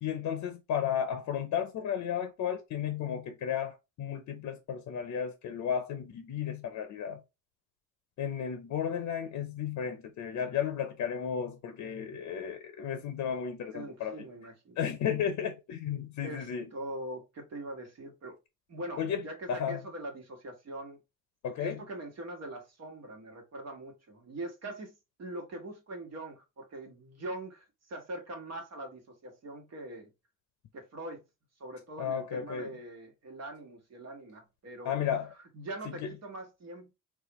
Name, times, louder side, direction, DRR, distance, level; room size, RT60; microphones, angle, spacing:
voice 1, 0.0-7.2 8.2-14.3 14.8-16.7 19.0-19.8 21.4-21.8 32.0-32.7 34.8-35.3 35.9-36.1, left 8 dB, 70° left, 0.6 m, -33 dB
voice 2, 13.7-14.8 16.2-18.4 18.7-21.0 21.6-30.1 30.7-31.2 31.6-35.0 35.5-36.9, right 1 dB, 55° right, 1.4 m, -42 dB
4.0 x 2.4 x 3.0 m
cardioid pair, 90°, 30 cm